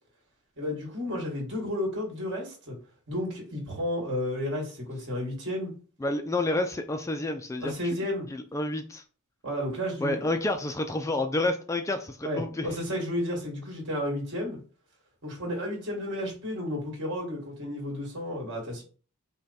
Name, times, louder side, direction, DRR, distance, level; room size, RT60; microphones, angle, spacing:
voice 1, 0.6-2.8 3.1-5.7 7.6-8.3 9.4-10.5 12.2-14.6 15.2-18.8, left 1 dB, 55° right, -1 dB, 2.1 m, -32 dB
voice 2, 6.0-7.7 8.3-9.0 10.0-12.7, left 2 dB, 15° left, 6 dB, 0.3 m, -29 dB
5.2 x 2.2 x 4.2 m, 0.39 s
head